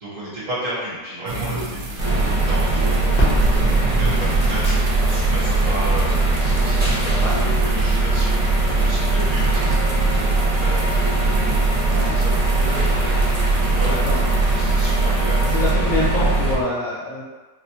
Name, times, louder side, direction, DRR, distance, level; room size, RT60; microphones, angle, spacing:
voice 1, 0.0-2.9 3.5-12.7 13.5-14.0 14.2-15.4, right 1 dB, 50° right, -8 dB, 1.2 m, -33 dB
sound 1, 1.2-15.7, right 2 dB, 70° right, 1.2 m, -34 dB
sound 2, 2.0-16.5, right 2 dB, 30° right, 0.7 m, -19 dB
sound 3, 3.1-16.6, equal, 85° left, 1.8 m, -33 dB
voice 2, 13.8-14.2 15.4-17.2, left 2 dB, 65° left, -8 dB, 0.8 m, -25 dB
4.2 x 2.1 x 2.7 m, 1.3 s
omnidirectional pair, 1.9 m